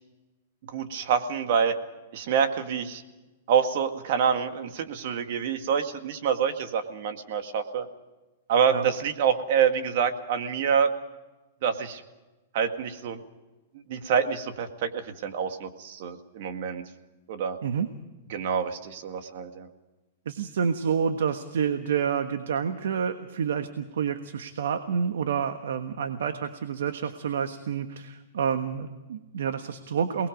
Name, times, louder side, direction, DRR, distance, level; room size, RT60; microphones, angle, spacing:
voice 1, 0.7-1.8 2.1-3.0 3.5-7.9 8.5-10.9 11.6-12.0 12.5-13.2 13.9-16.8 17.3-17.6 18.3-19.7, right 7 dB, 55° right, 7 dB, 2.0 m, -26 dB
voice 2, 20.2-30.3, right 7 dB, 85° right, 8 dB, 1.4 m, -28 dB
28.0 x 20.0 x 5.3 m, 1.1 s
hypercardioid pair, 160°, 0 cm